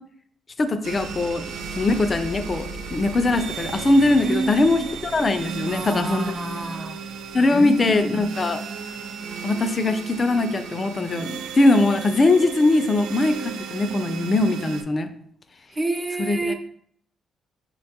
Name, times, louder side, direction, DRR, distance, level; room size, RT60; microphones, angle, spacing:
voice 1, 0.6-1.4 1.8-6.3 7.3-8.6 9.4-15.1 16.2-16.5, left 2 dB, 35° left, 0.3 m, -21 dB
sound 1, 0.8-14.8, right 5 dB, 85° right, 0.3 m, -34 dB
voice 2, 4.2-4.9 5.7-7.0 7.5-8.3 15.7-16.5, right 2 dB, 25° right, 0.5 m, -29 dB
5.1 x 2.2 x 2.8 m
cardioid pair, 90°, 0 cm